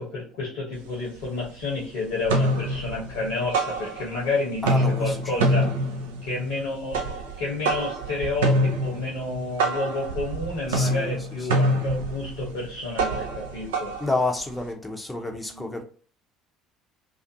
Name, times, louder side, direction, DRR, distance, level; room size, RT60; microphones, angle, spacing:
voice 1, 0.0-5.7 6.2-14.0 15.2-15.7, left 3 dB, 65° left, -3 dB, 0.8 m, -30 dB
sound 1, 0.7-0.8 1.2-1.8 2.1-4.3 4.6-14.7, right 1 dB, 75° right, 0.4 m, -26 dB
voice 2, 4.6-5.5 10.7-11.5 14.0-15.8, left 2 dB, 10° left, 3 dB, 0.6 m, -30 dB
2.5 x 2.5 x 2.6 m, 0.41 s
figure-of-eight pair, 55°, 0 cm